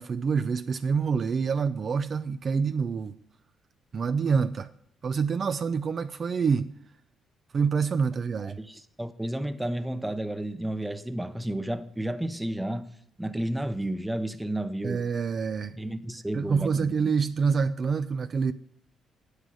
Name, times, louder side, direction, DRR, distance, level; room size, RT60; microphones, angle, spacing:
voice 1, 0.0-3.1 3.9-4.7 5.0-6.7 7.5-8.6 14.8-15.8 16.3-18.5, right 5 dB, 45° right, 0.5 m, -26 dB
voice 2, 8.4-12.9 13.2-15.0 15.8-17.1, right 1 dB, 10° right, 0.9 m, -32 dB
9.8 x 8.1 x 7.8 m
cardioid pair, 90°, 0 cm